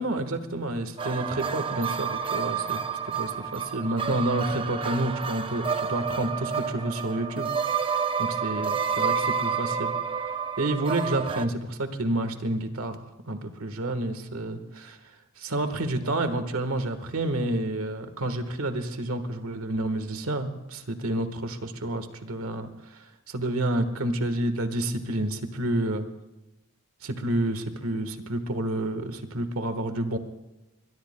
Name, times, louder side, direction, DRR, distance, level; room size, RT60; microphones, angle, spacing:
voice 1, 0.0-7.9 8.2-9.9 10.6-15.0 15.4-26.0 27.0-30.2, right 1 dB, 90° right, 9 dB, 1.4 m, -29 dB
sound 1, 1.0-11.5, right 6 dB, 25° right, 0.5 m, -29 dB
23.5 x 21.5 x 2.2 m, 1.0 s
head